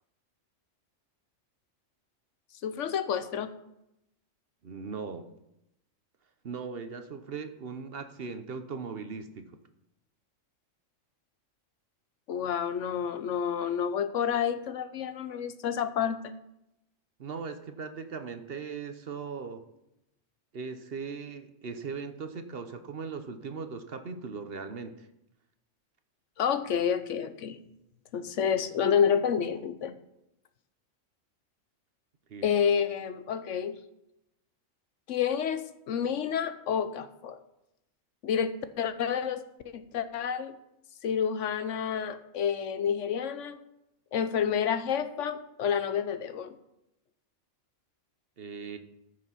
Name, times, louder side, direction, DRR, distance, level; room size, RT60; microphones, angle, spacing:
voice 1, 2.6-3.5 12.3-16.3 26.4-27.6 28.1-29.9 32.4-33.7 35.1-37.4 38.2-40.5 41.0-43.6 44.1-46.5, left 8 dB, 75° left, 11 dB, 1.0 m, -29 dB
voice 2, 4.6-5.3 6.4-9.5 17.2-19.6 20.5-25.1 32.3-32.5 48.4-48.8, right 5 dB, 55° right, 9 dB, 1.0 m, -39 dB
14.0 x 6.2 x 5.8 m, 0.85 s
omnidirectional pair, 1.3 m